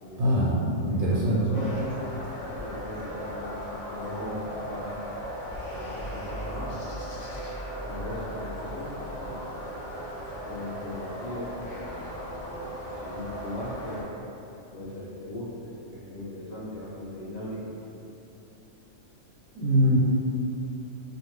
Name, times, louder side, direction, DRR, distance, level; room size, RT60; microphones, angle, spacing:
voice 1, 0.2-0.5 0.9-1.4 19.5-20.0, equal, 85° right, -6 dB, 1.0 m, -22 dB
voice 2, 0.8-1.9 2.5-3.5 3.9-4.9 5.7-6.7 7.9-9.0 9.2-9.5 10.4-11.5 11.8-12.7 13.0-14.1 14.7-17.6, left 1 dB, 45° left, -8 dB, 0.6 m, -38 dB
sound 1, 1.5-14.0, equal, 70° left, 0.9 m, -37 dB
2.5 x 2.3 x 3.1 m, 2.8 s
omnidirectional pair, 1.4 m